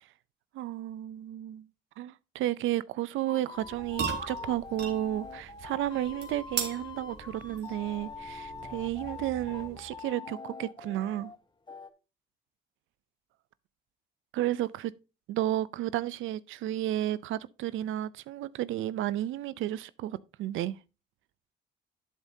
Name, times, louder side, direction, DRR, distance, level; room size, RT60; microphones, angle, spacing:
voice 1, 0.5-1.7 2.0-11.3 14.3-14.9 15.3-20.8, right 13 dB, 85° right, 0.5 m, -32 dB
sound 1, 3.3-11.4 11.7-11.9, left 4 dB, 25° left, 1.1 m, -44 dB
sound 2, 3.6-10.0, right 6 dB, 55° right, 2.4 m, -40 dB
11.5 x 7.3 x 2.7 m
cardioid pair, 90°, 20 cm